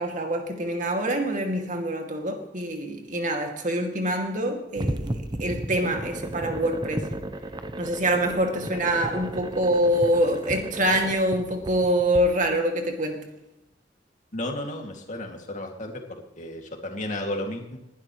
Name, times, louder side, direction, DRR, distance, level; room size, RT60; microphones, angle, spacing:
voice 1, 0.0-7.1 7.8-13.2, right 1 dB, 45° right, 3 dB, 2.4 m, -25 dB
sound 1, 4.8-12.2, right 1 dB, 25° right, 0.8 m, -34 dB
voice 2, 14.3-17.8, left 1 dB, 45° left, 2 dB, 2.4 m, -33 dB
19.5 x 12.0 x 3.2 m, 0.89 s
head